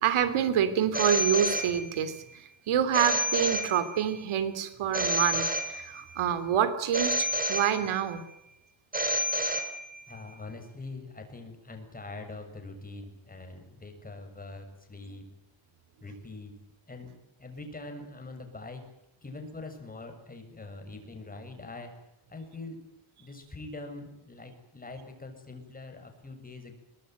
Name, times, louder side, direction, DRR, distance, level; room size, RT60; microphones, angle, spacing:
voice 1, 0.0-8.2, right 9 dB, 80° right, 10 dB, 3.0 m, -27 dB
Telephone, 0.9-2.2 2.9-4.2 4.9-6.2 6.9-8.2 8.9-10.2, equal, 20° right, 3.1 m, -30 dB
voice 2, 10.1-15.3 16.0-16.5 16.9-17.1 17.4-18.8 19.2-21.9 22.3-22.8 23.2-26.8, left 3 dB, 15° left, 5 dB, 6.9 m, -43 dB
24.5 x 21.0 x 9.2 m, 0.84 s
cardioid pair, 160°, 48 cm